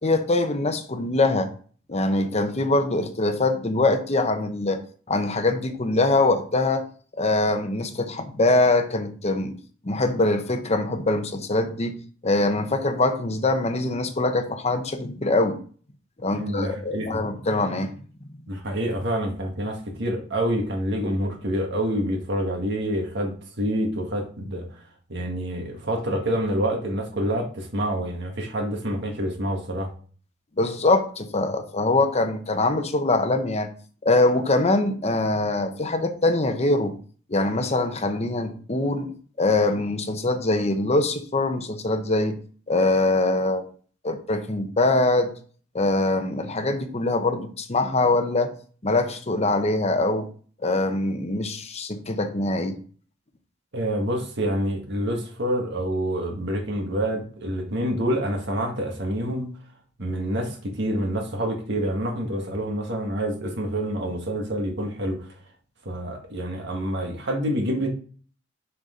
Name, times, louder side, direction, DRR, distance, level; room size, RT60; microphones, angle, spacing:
voice 1, 0.0-1.5 1.9-4.8 5.1-6.8 7.2-9.6 9.8-12.0 12.2-15.6 16.2-17.9 30.6-33.7 34.0-36.9 37.3-39.1 39.4-42.4 42.7-43.6 44.0-45.3 45.7-48.5 48.8-50.3 50.6-52.8, left 2 dB, 35° left, 8 dB, 0.9 m, -23 dB
voice 2, 16.3-17.2 18.5-24.7 25.1-29.9 53.7-59.5 60.0-65.2 65.9-67.9, equal, 65° right, 2 dB, 1.8 m, -27 dB
6.6 x 5.9 x 3.8 m, 0.43 s
head